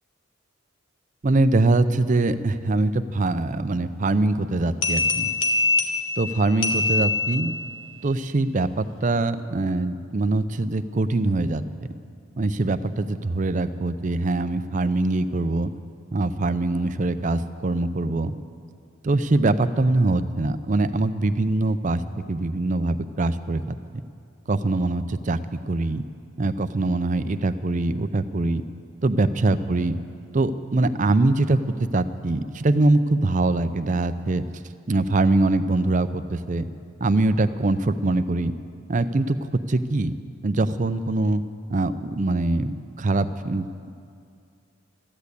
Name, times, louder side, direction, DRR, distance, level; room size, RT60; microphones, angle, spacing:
voice 1, 1.2-5.3 6.2-7.6 8.0-11.6 12.4-15.7 16.1-18.3 19.0-22.0 22.3-23.6 24.5-25.4 25.7-26.1 26.4-28.6 29.0-30.0 30.3-34.4 34.9-36.7 37.0-38.5 38.9-39.4 39.7-40.1 40.4-41.4 41.7-43.9, right 2 dB, 40° right, 11 dB, 0.5 m, -23 dB
sound 1, 4.8-7.8, left 3 dB, 75° left, 1.5 m, -24 dB
14.0 x 10.5 x 8.3 m, 2.4 s
head